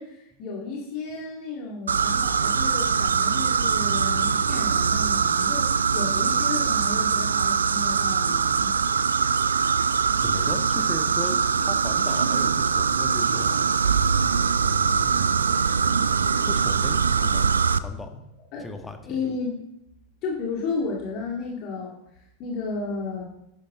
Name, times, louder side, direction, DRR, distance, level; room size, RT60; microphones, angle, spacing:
voice 1, 0.0-8.7 18.5-18.7 19.0-19.6 20.2-23.3, left 4 dB, 40° left, -2 dB, 2.3 m, -33 dB
sound 1, 1.9-17.8, right 6 dB, 70° right, 0.4 m, -22 dB
voice 2, 10.2-13.7 14.6-15.7 16.5-17.5 17.7-18.2 18.6-19.2, left 2 dB, 10° left, 5 dB, 1.6 m, -37 dB
11.5 x 10.0 x 3.9 m, 0.81 s
figure-of-eight pair, 90°, 0 cm